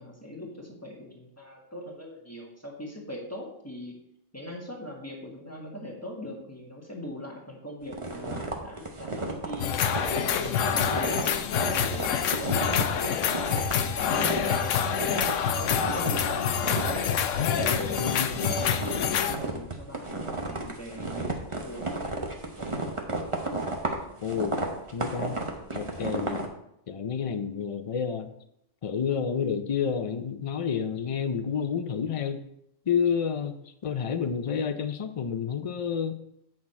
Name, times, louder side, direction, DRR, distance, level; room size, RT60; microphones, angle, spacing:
voice 1, 0.0-3.9 4.3-9.8 10.2-13.1 13.7-15.2 15.5-16.6 17.5-22.9, left 1 dB, 10° left, -2 dB, 1.5 m, -41 dB
sound 1, 7.9-15.4 15.6-16.2 16.6-26.5, right 2 dB, 25° right, 1.0 m, -33 dB
sound 2, 9.6-19.4, left 8 dB, 80° left, 1.0 m, -27 dB
voice 2, 18.0-18.3 24.2-24.6 24.9-25.4 25.7-26.4 26.9-28.3 28.8-32.4 32.9-33.6 33.8-36.2, left 7 dB, 60° left, 9 dB, 0.3 m, -29 dB
8.6 x 5.9 x 4.3 m, 0.76 s
omnidirectional pair, 1.3 m